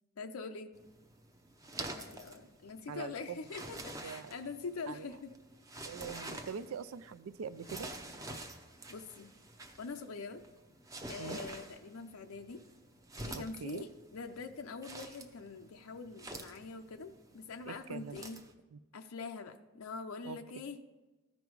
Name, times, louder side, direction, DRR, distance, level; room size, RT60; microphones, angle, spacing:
voice 1, 0.2-0.7 1.9-5.3 8.9-9.3 9.8-10.4 11.1-12.6 13.2-18.4 18.9-20.8, left 4 dB, 85° left, 6 dB, 0.6 m, -44 dB
sound 1, 0.7-18.5, right 2 dB, 15° right, 0.6 m, -48 dB
voice 2, 2.9-3.4 4.0-4.3 4.9-5.0 5.8-7.9 11.2-11.4 13.3-13.8 17.7-18.2 18.7-18.8 20.2-20.4, right 6 dB, 80° right, 14 dB, 0.4 m, -43 dB
13.5 x 5.3 x 4.7 m, 1.1 s
head